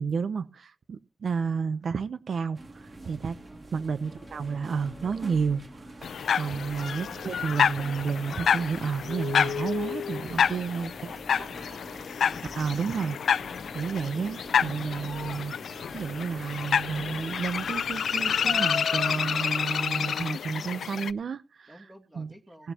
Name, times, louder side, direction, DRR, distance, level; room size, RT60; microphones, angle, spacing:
voice 1, 0.0-3.4 3.7-11.1 11.4-11.5 12.6-13.2 13.7-15.5 15.9-21.8 22.2-22.3 22.6-22.7, right 5 dB, 60° right, 13 dB, 0.7 m, -31 dB
sound 1, 2.5-18.7, right 2 dB, 30° right, 2.3 m, -47 dB
sound 2, 4.0-17.7, left 2 dB, 20° left, 1.2 m, -52 dB
sound 3, 6.0-21.1, left 7 dB, 80° left, 0.6 m, -29 dB
voice 2, 10.3-11.9 21.7-22.7, equal, 5° right, 5 dB, 2.6 m, -52 dB
18.5 x 11.0 x 2.9 m, 0.31 s
wide cardioid pair, 120°, 0 cm